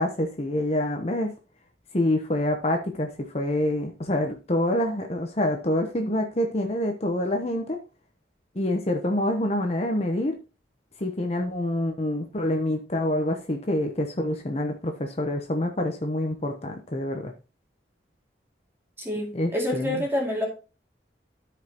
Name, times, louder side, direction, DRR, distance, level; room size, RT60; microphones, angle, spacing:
voice 1, 0.0-1.3 1.9-7.8 8.5-10.3 11.0-17.3 19.3-20.0, left 1 dB, 35° left, 4 dB, 0.9 m, -26 dB
voice 2, 19.0-20.5, left 1 dB, 15° right, -1 dB, 2.5 m, -27 dB
13.0 x 5.2 x 3.0 m, 0.33 s
head